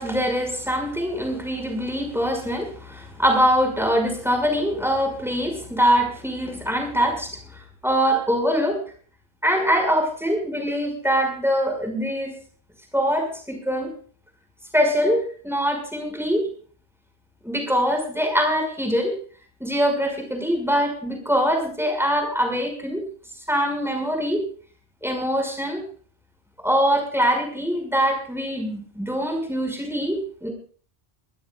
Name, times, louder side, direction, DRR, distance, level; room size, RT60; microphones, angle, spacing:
voice 1, 0.0-7.4 7.8-8.8 9.4-12.3 12.9-13.9 14.7-16.5 17.4-19.1 19.6-23.0 23.5-24.4 25.0-25.8 26.6-30.5, equal, ahead, 3 dB, 5.7 m, -23 dB
24.5 x 16.0 x 2.4 m, 0.44 s
omnidirectional pair, 1.1 m